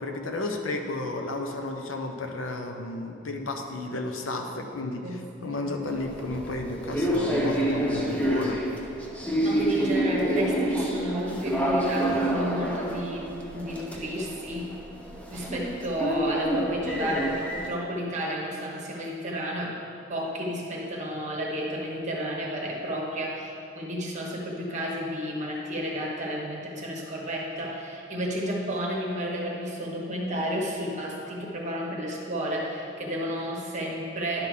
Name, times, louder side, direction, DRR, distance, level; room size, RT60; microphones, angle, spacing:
voice 1, 0.0-8.6, left 2 dB, 85° left, 3 dB, 0.8 m, -33 dB
voice 2, 5.0-5.7 9.4-14.8 15.3-19.8 20.1-34.5, equal, 40° right, -2 dB, 1.1 m, -32 dB
sound 1, 5.9-17.7, right 1 dB, 5° left, 0.7 m, -28 dB
10.5 x 5.9 x 3.7 m, 2.6 s
head